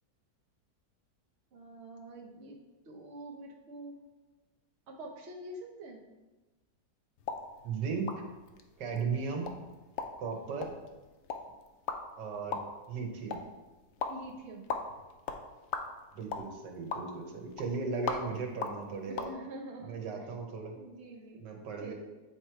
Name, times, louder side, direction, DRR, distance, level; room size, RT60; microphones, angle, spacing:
voice 1, 1.5-3.9 4.9-6.0 14.1-14.7 19.1-20.3 20.7-21.4 21.8-21.9, right 1 dB, 50° right, 0 dB, 0.9 m, -46 dB
sound 1, 7.2-19.3, left 5 dB, 75° left, 0.6 m, -41 dB
voice 2, 7.6-8.1 8.8-9.5 10.2-10.7 12.2-12.6 12.9-13.4 16.1-19.3 19.8-20.8 21.4-21.9, right 5 dB, 90° right, 2 dB, 1.6 m, -36 dB
8.6 x 3.0 x 4.5 m, 1.1 s
omnidirectional pair, 1.8 m